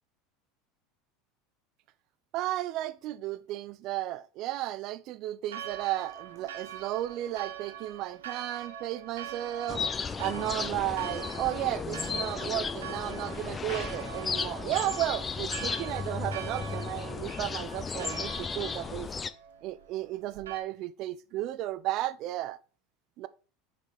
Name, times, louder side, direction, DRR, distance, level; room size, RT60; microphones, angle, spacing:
voice 1, 2.3-9.8 10.2-19.1 19.6-22.6 23.2-23.3, right 14 dB, 55° right, 0.5 m, -34 dB
Church bell, 5.5-20.6, right 9 dB, 90° right, 1.0 m, -43 dB
sound 1, 9.7-19.3, left 5 dB, 25° left, 0.5 m, -35 dB
6.4 x 4.2 x 4.9 m
hypercardioid pair, 90°, 0 cm